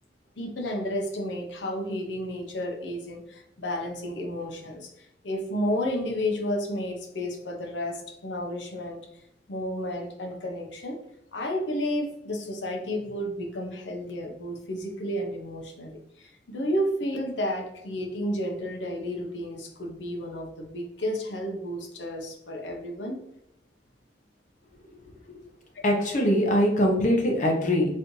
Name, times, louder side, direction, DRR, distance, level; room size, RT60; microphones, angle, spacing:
voice 1, 0.4-9.0 9.5-11.0 11.3-23.2 25.7-25.9, equal, 85° left, 2 dB, 0.8 m, -32 dB
voice 2, 25.8-27.9, equal, 45° left, 0 dB, 0.9 m, -22 dB
4.1 x 2.6 x 3.1 m, 0.84 s
head